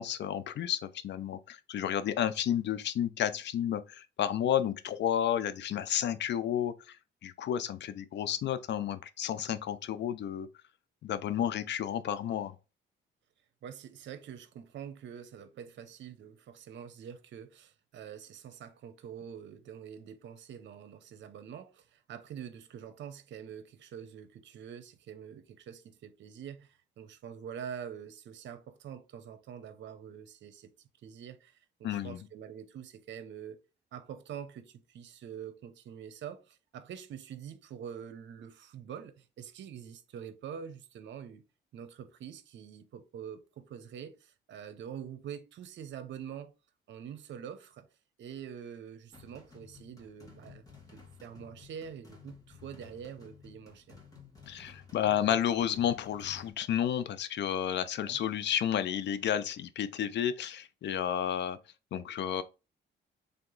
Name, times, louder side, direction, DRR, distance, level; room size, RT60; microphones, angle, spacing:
voice 1, 0.0-7.0 7.2-10.5 11.0-12.6 31.8-32.2 54.5-61.6 61.9-62.4, left 10 dB, 60° left, 0.5 m, -31 dB
voice 2, 13.6-30.7 31.0-33.6 33.9-41.4 41.7-46.5 46.9-47.9 48.2-50.6 50.9-54.0 58.0-58.2, right 8 dB, 65° right, 0.7 m, -45 dB
sound 1, 49.1-56.5, left 6 dB, 20° left, 1.7 m, -54 dB
3.5 x 2.9 x 3.8 m
cardioid pair, 90°, 20 cm